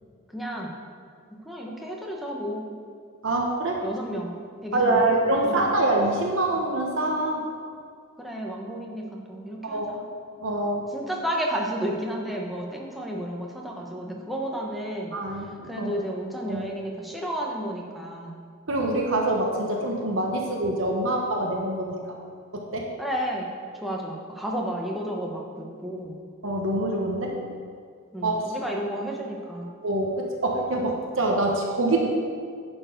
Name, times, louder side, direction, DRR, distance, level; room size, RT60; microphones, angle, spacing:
voice 1, 0.3-0.7 1.5-2.6 3.8-4.3 4.6-5.1 5.4-5.7 8.2-10.0 10.9-15.1 15.7-18.4 23.0-26.2 28.1-29.7, equal, ahead, -2 dB, 0.9 m, -32 dB
voice 2, 3.2-3.8 4.7-7.4 9.6-9.9 10.4-10.9 15.1-16.0 16.5-16.7 18.7-22.0 22.5-22.9 26.4-27.3 28.2-28.5 29.8-32.1, right 2 dB, 70° right, 0 dB, 1.0 m, -25 dB
10.5 x 4.6 x 5.1 m, 2.2 s
head